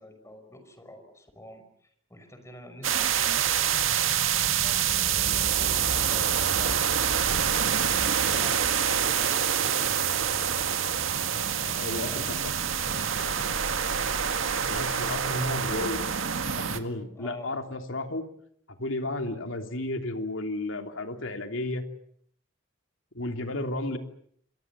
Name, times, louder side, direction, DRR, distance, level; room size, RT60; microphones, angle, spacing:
voice 1, 0.0-3.9 4.4-4.9 5.3-7.1 7.6-10.8 11.6-13.6 15.0-15.9 17.2-17.5, left 1 dB, 15° left, 8 dB, 5.6 m, -47 dB
sound 1, 2.8-16.8, right 8 dB, 85° right, 1.9 m, -26 dB
voice 2, 11.8-12.6 14.6-16.0 16.5-18.2 18.7-21.8 23.1-24.0, left 2 dB, 75° left, 5 dB, 3.1 m, -33 dB
27.5 x 23.5 x 7.5 m, 0.67 s
head